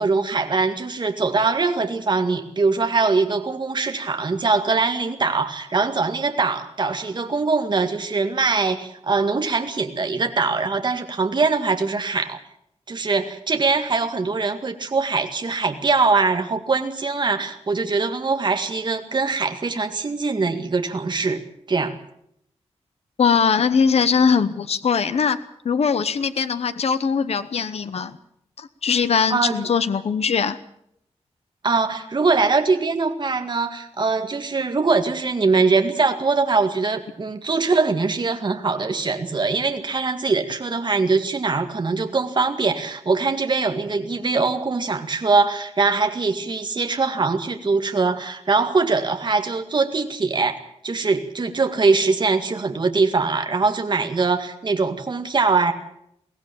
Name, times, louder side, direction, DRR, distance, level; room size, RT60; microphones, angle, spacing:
voice 1, 0.0-12.4 12.9-21.4 21.7-22.0 29.3-29.6 31.6-50.6 50.8-55.7, right 4 dB, 40° right, 6 dB, 2.0 m, -22 dB
voice 2, 23.2-25.4 25.6-28.2 28.6-30.6, left 6 dB, 60° left, 12 dB, 0.9 m, -21 dB
22.5 x 17.5 x 7.0 m, 0.73 s
wide cardioid pair, 165°, 12 cm